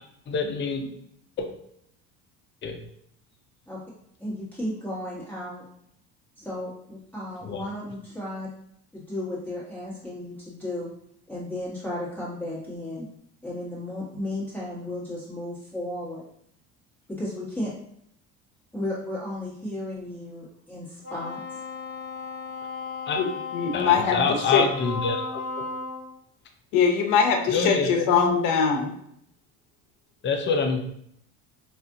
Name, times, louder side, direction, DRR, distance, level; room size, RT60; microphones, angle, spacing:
voice 1, 0.3-0.9 1.4-1.5 2.6-2.8 7.4-7.6 23.1-23.2 23.7-25.4 27.5-28.0 30.2-30.8, left 4 dB, 30° left, 4 dB, 0.6 m, -26 dB
voice 2, 4.2-5.6 6.4-8.5 8.9-10.9 11.3-13.0 13.4-16.2 17.1-17.7 18.7-21.6, left 1 dB, 5° left, -9 dB, 1.3 m, -34 dB
Wind instrument woodwind instrument, 21.0-26.1, left 4 dB, 45° right, 1.3 m, -35 dB
voice 3, 23.5-24.6 26.7-28.9, left 6 dB, 65° left, 3 dB, 0.8 m, -22 dB
4.1 x 2.5 x 2.6 m, 0.71 s
supercardioid pair, 100°, 36 cm